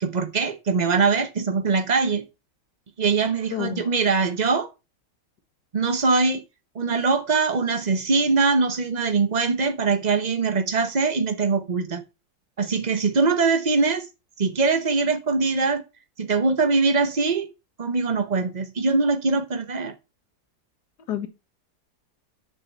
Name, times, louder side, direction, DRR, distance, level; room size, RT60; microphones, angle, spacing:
voice 1, 0.0-2.2 3.0-4.7 5.7-6.4 6.7-12.0 12.6-14.1 14.4-15.8 16.2-17.5 17.8-19.9, right 4 dB, 50° right, 0.5 m, -22 dB
voice 2, 3.5-3.9 21.1-21.3, left 10 dB, 60° left, 1.8 m, -29 dB
7.1 x 6.8 x 6.8 m
omnidirectional pair, 2.0 m